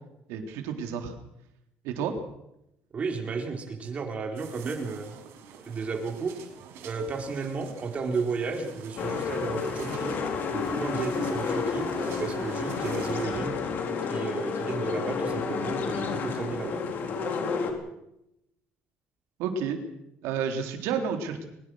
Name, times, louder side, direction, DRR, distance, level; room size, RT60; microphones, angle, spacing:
voice 1, 0.3-1.2 1.8-2.1 19.4-19.8 20.2-21.4, right 6 dB, 85° right, 5 dB, 3.7 m, -30 dB
voice 2, 2.9-5.1 5.7-6.3 6.8-10.2 10.5-13.5 14.1-16.8, right 4 dB, 30° right, 3 dB, 4.3 m, -33 dB
sound 1, 4.3-13.3, right 7 dB, 70° right, 5.2 m, -46 dB
sound 2, 9.0-17.7, left 5 dB, 45° left, 4.3 m, -30 dB
22.5 x 21.5 x 6.5 m, 0.84 s
cardioid pair, 150°, 4 cm